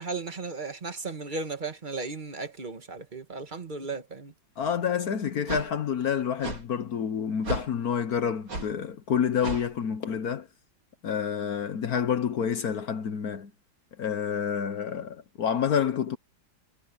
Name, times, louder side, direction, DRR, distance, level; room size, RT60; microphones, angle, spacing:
voice 1, 0.0-4.3, right 3 dB, 25° right, 1.4 m, -35 dB
voice 2, 4.6-10.5 11.0-13.5 14.0-16.2, left 7 dB, 55° left, 1.2 m, -28 dB
sound 1, 4.6-4.7 5.5-5.7 6.4-6.6 7.4-7.7 8.5-8.7 9.4-9.7, right 2 dB, 75° right, 5.6 m, -33 dB
omnidirectional pair, 2.3 m